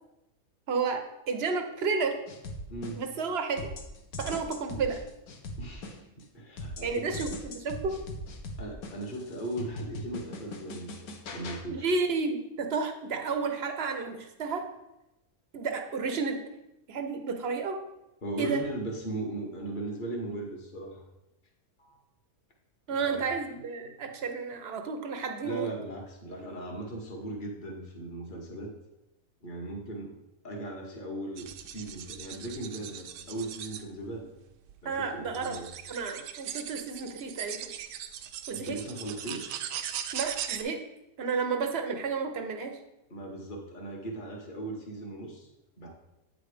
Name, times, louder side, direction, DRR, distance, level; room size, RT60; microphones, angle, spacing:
voice 1, 0.7-2.2 3.0-3.7 4.2-5.0 6.8-8.0 11.7-14.7 15.5-16.4 16.9-17.8 18.4-18.6 22.9-25.7 34.8-35.6 35.9-37.7 38.5-38.8 40.1-40.8 41.2-42.8, right 4 dB, 50° right, 6 dB, 0.8 m, -31 dB
sound 1, 2.3-3.2 3.6-6.2 6.6-11.6, left 1 dB, 70° left, 1.3 m, -40 dB
voice 2, 2.7-3.0 5.6-6.0 6.3-7.2 8.6-11.9 18.2-21.0 21.8-22.0 22.9-23.3 25.4-28.7 29.4-30.1 30.4-34.3 34.8-35.7 38.5-39.6 43.1-45.5 45.8-45.9, right 2 dB, 35° left, 0 dB, 1.4 m, -38 dB
sound 2, 31.4-33.8 34.7-34.8 35.3-40.6, right 9 dB, 75° right, 1.1 m, -39 dB
8.6 x 4.0 x 4.9 m, 0.92 s
omnidirectional pair, 1.7 m